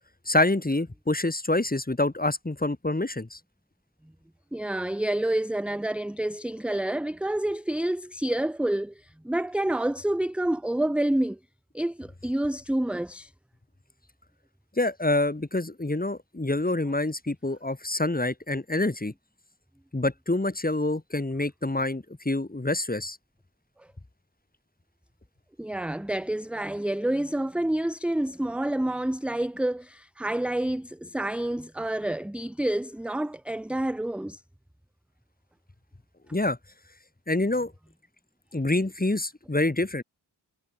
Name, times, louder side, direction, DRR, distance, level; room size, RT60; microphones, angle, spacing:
voice 1, 0.3-3.4 14.8-19.1 19.9-23.2 36.3-36.6 37.3-37.7 38.5-40.0, left 2 dB, 20° left, 2.2 m, -26 dB
voice 2, 4.5-11.4 11.7-13.3 25.6-34.4, right 1 dB, 5° right, 0.6 m, -28 dB
cardioid pair, 50°, 44 cm